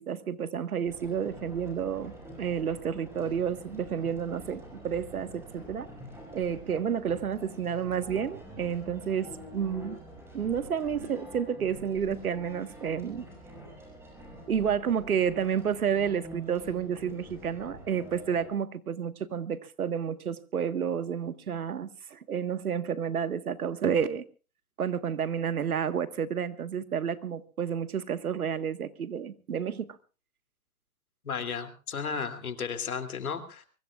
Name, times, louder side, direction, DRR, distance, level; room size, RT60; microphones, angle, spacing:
voice 1, 0.0-5.9 6.3-10.0 10.3-13.2 14.5-24.2 24.8-30.0, right 7 dB, 85° right, 1.6 m, -30 dB
sound 1, 0.8-18.5, right 1 dB, 5° right, 6.4 m, -46 dB
voice 2, 31.2-33.7, left 6 dB, 85° left, 2.9 m, -34 dB
24.0 x 22.0 x 2.4 m
hypercardioid pair, 150°, 42 cm